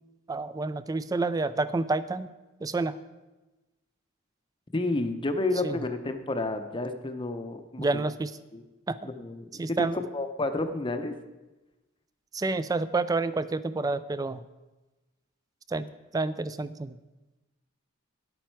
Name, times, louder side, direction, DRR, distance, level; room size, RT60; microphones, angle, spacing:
voice 1, 0.3-2.3 2.6-3.0 5.6-5.8 7.8-8.3 8.9-9.0 9.6-10.0 12.3-14.4 15.7-16.9, right 3 dB, 15° right, 14 dB, 0.3 m, -29 dB
voice 2, 4.7-8.0 8.5-8.6 9.0-11.1, left 2 dB, 25° left, 8 dB, 0.6 m, -30 dB
10.5 x 8.8 x 4.5 m, 1.1 s
head